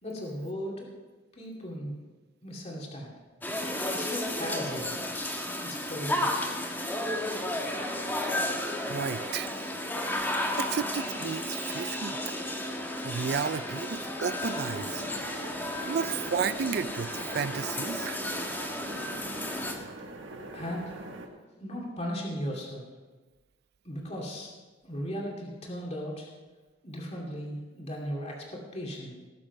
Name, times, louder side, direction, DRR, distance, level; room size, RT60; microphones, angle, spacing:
voice 1, 0.0-0.9 1.3-1.9 2.4-3.1 3.9-5.0 5.6-6.5 20.5-21.0 21.6-22.9 23.8-24.5 24.8-26.3 26.8-29.2, equal, 35° left, -1 dB, 2.5 m, -37 dB
sound 1, 3.4-19.7, left 1 dB, 10° left, 1.5 m, -33 dB
voice 2, 8.8-9.5 10.6-12.4 13.0-15.1 15.9-18.2, right 7 dB, 55° right, 17 dB, 0.4 m, -33 dB
sound 2, 14.6-21.3, right 2 dB, 80° right, 1.5 m, -43 dB
18.5 x 7.3 x 5.4 m, 1.3 s
head